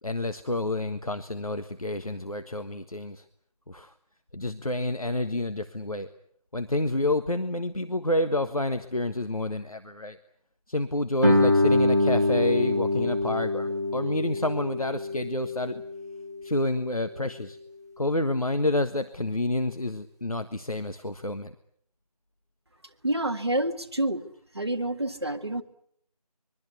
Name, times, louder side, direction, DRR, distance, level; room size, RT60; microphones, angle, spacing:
voice 1, 0.0-3.2 3.7-3.9 4.3-6.1 6.5-10.2 10.7-15.8 16.4-17.6 18.0-21.5, left 1 dB, 60° left, 9 dB, 1.5 m, -29 dB
Guitar, 11.2-16.6, left 2 dB, 25° right, 1.6 m, -25 dB
voice 2, 23.0-24.3 24.5-25.6, right 1 dB, 40° right, 6 dB, 1.7 m, -28 dB
25.5 x 22.5 x 8.3 m, 0.67 s
figure-of-eight pair, 170°, 20 cm